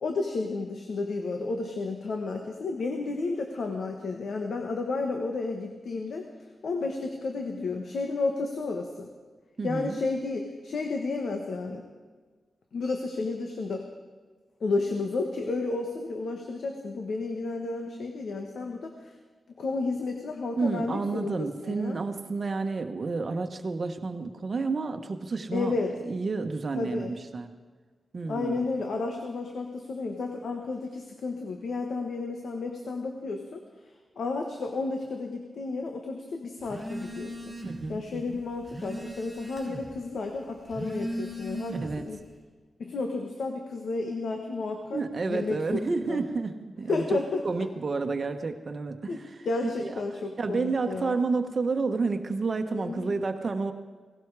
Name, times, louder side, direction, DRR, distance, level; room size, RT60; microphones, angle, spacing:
voice 1, 0.0-6.3 6.6-9.1 9.6-11.8 12.7-13.8 14.6-19.1 19.6-21.3 21.6-22.0 25.5-25.9 26.8-27.2 28.3-33.6 34.2-37.5 37.9-42.2 42.8-45.0 45.3-45.8 46.1-46.2 46.9-47.4 49.1-49.2 49.4-51.2 52.7-53.1, left 3 dB, 75° left, 4 dB, 1.4 m, -32 dB
voice 2, 9.6-10.0 20.6-25.7 26.1-27.5 28.1-28.7 37.6-38.4 41.8-42.1 44.9-47.2 47.4-49.3 49.6-49.9 50.4-53.7, right 4 dB, 40° right, 7 dB, 1.2 m, -30 dB
Telephone, 36.7-37.9 38.3-39.9 40.6-42.1, equal, 5° left, 3.1 m, -37 dB
17.5 x 17.0 x 4.8 m, 1.4 s
wide cardioid pair, 150°, 0 cm